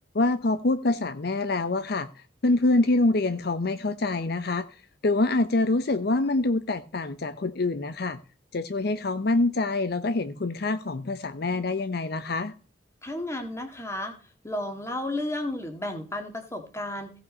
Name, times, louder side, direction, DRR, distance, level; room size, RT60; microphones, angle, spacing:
voice 1, 0.1-2.1 2.4-4.7 5.0-8.2 8.5-12.5, left 2 dB, 55° left, 0.6 m, -25 dB
voice 2, 13.0-14.1 14.4-17.1, left 1 dB, 15° left, 1.7 m, -32 dB
16.0 x 5.8 x 5.2 m
head